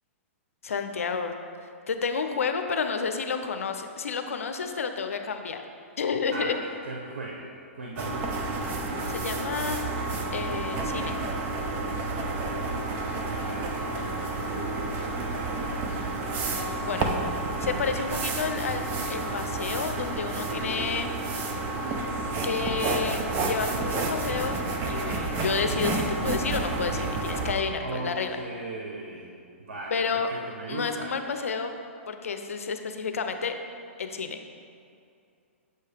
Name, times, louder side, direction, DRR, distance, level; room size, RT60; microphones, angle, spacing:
voice 1, 0.6-1.3 1.6-5.6 6.0-6.6 9.1-9.8 10.3-11.2 16.8-17.1 17.6-21.1 22.4-24.6 24.9-28.4 29.9-30.3 30.7-31.7 32.1-33.6 34.0-34.4, left 5 dB, 85° left, 7 dB, 0.5 m, -30 dB
voice 2, 6.9-8.5 12.5-16.0 27.8-29.3 29.6-31.1, right 2 dB, 85° right, -1 dB, 0.7 m, -39 dB
sound 1, 8.0-27.5, right 3 dB, 30° right, 0.6 m, -30 dB
7.6 x 2.8 x 4.9 m, 2.5 s
hypercardioid pair, 135°, 7 cm